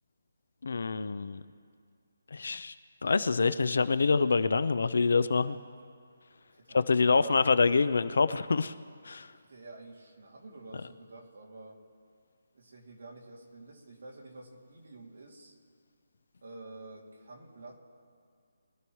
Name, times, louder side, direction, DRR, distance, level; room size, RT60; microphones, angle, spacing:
voice 1, 0.6-1.4 2.3-2.7 3.0-5.6 6.7-8.7 9.0-9.3, left 4 dB, 60° left, 14 dB, 0.5 m, -26 dB
voice 2, 6.5-7.4 9.5-11.8 12.5-15.6 16.4-17.8, right 2 dB, 55° right, -2 dB, 2.5 m, -49 dB
23.5 x 13.0 x 3.1 m, 2.2 s
hypercardioid pair, 180°, 0 cm